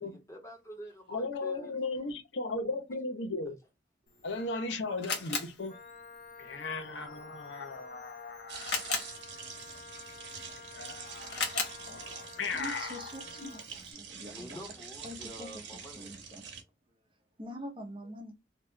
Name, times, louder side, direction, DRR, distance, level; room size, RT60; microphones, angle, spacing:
voice 1, 0.0-1.7 5.0-5.1 14.3-16.2, equal, 15° left, 1.0 m, -47 dB
voice 2, 1.1-3.5 4.2-5.8 6.4-9.2 10.8-13.1 13.4-13.5 13.9-14.0, left 3 dB, 80° left, 0.7 m, -37 dB
Camera, 4.1-13.9, left 4 dB, 65° left, 1.1 m, -41 dB
Wind instrument woodwind instrument, 5.7-13.7, left 5 dB, 45° left, 0.4 m, -50 dB
sound 1, 8.5-16.6, right 6 dB, 75° right, 0.9 m, -46 dB
voice 3, 12.5-14.6 15.0-15.6 16.0-16.5 17.4-18.3, equal, 30° right, 0.7 m, -45 dB
2.9 x 2.3 x 3.5 m
head